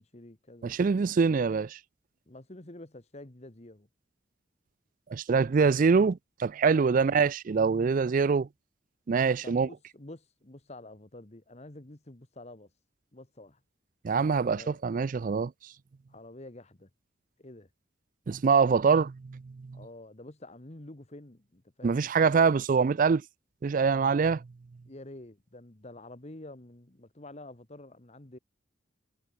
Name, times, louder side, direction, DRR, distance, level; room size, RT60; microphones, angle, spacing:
voice 1, 0.0-0.8 2.3-3.9 6.7-7.0 9.4-12.7 13.1-13.6 14.5-14.8 16.1-16.9 17.4-17.7 19.7-22.0 24.8-28.4, left 1 dB, 35° left, 1.6 m, -48 dB
voice 2, 0.6-1.8 5.1-8.5 9.1-9.7 14.0-15.5 18.3-19.4 19.7-19.8 21.8-23.2 23.6-24.4, right 5 dB, 45° right, 0.4 m, -24 dB
head